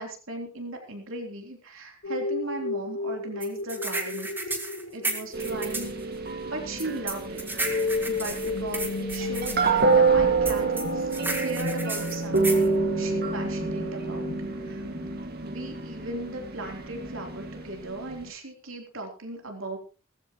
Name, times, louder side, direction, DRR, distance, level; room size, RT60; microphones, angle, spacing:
voice 1, 0.0-5.9 6.5-7.5 8.1-14.8 15.4-19.8, right 2 dB, 70° right, 2 dB, 3.6 m, -37 dB
sound 1, 2.0-15.2, left 2 dB, 55° left, 1.0 m, -34 dB
sound 2, 3.4-5.9 6.8-9.6 10.5-12.7, right 2 dB, 10° right, 2.1 m, -32 dB
sound 3, 5.3-18.3, right 4 dB, 45° right, 2.2 m, -28 dB
18.0 x 14.5 x 3.1 m, 0.34 s
head